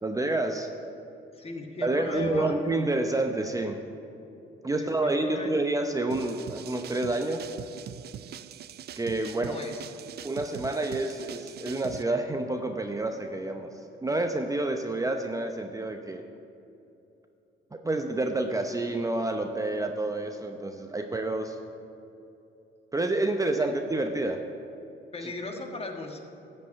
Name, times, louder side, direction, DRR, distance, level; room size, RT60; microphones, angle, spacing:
voice 1, 0.0-0.7 1.8-3.8 4.6-7.5 9.0-9.6 10.2-13.7 14.0-16.2 17.8-21.6 22.9-24.4, right 2 dB, 15° right, 5 dB, 0.7 m, -28 dB
voice 2, 1.3-2.8 4.7-5.5 9.4-9.8 23.6-23.7 25.1-26.2, left 4 dB, 30° left, 3 dB, 1.5 m, -37 dB
sound 1, 6.1-12.0, right 10 dB, 55° right, 0.4 m, -42 dB
12.5 x 5.4 x 8.4 m, 2.8 s
cardioid pair, 90°, 20 cm